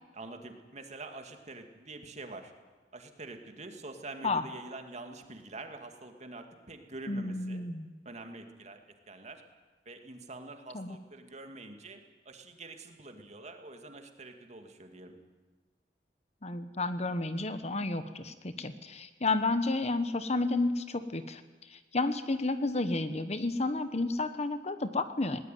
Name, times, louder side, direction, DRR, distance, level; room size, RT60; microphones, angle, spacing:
voice 1, 0.1-2.5 2.9-7.7 8.0-8.8 9.1-9.4 9.9-12.0 12.3-15.2, right 2 dB, 40° right, 5 dB, 2.4 m, -46 dB
voice 2, 7.1-7.9 10.7-11.0 16.4-25.4, left 2 dB, 40° left, 11 dB, 1.2 m, -31 dB
20.5 x 19.0 x 9.3 m, 1.3 s
head